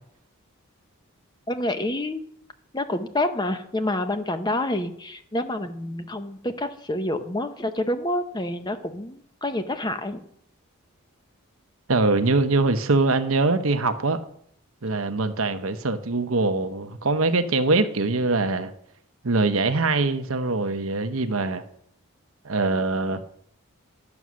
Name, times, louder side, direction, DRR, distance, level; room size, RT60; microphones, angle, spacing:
voice 1, 1.5-2.3 2.7-10.2, left 1 dB, 20° left, 0.7 m, -28 dB
voice 2, 11.9-14.2 14.8-18.7 19.2-21.6 22.4-23.2, right 3 dB, 75° right, 0.9 m, -23 dB
11.0 x 7.1 x 6.3 m
head